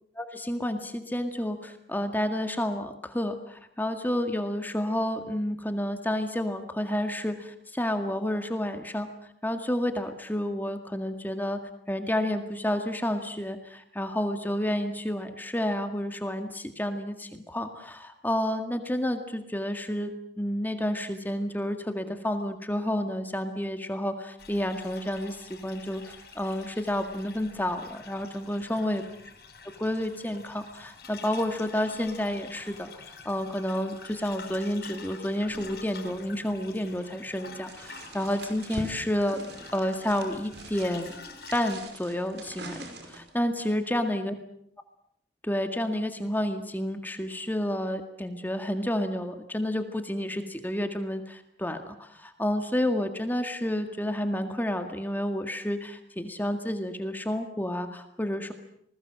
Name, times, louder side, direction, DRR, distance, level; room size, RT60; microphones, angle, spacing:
voice 1, 0.2-9.1 9.4-11.6 11.9-29.0 29.8-32.9 33.3-39.4 39.7-41.1 41.5-44.3 45.4-58.5, left 1 dB, 10° left, 6 dB, 1.9 m, -30 dB
sound 1, 24.4-41.8, left 4 dB, 60° left, 5.2 m, -47 dB
sound 2, 37.7-43.4, right 2 dB, 80° right, 5.4 m, -44 dB
28.0 x 20.5 x 7.6 m, 0.70 s
head